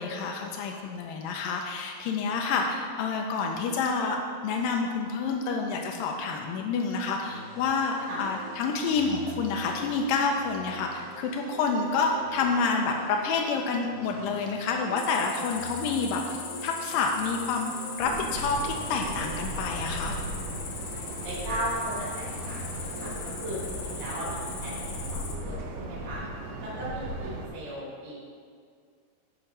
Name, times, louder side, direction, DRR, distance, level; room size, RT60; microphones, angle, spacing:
voice 1, 0.0-4.2 4.4-20.1, left 4 dB, 90° left, 1 dB, 2.0 m, -28 dB
sound 1, 7.2-23.3, left 1 dB, 55° left, 1.1 m, -46 dB
Cricket, 15.0-25.3, left 5 dB, 70° left, 1.9 m, -40 dB
sound 2, 18.0-27.5, right 1 dB, 80° right, 2.1 m, -37 dB
voice 2, 21.0-26.2 26.6-28.3, right 1 dB, 30° right, -7 dB, 1.4 m, -37 dB
7.8 x 4.7 x 5.4 m, 2.1 s
omnidirectional pair, 4.6 m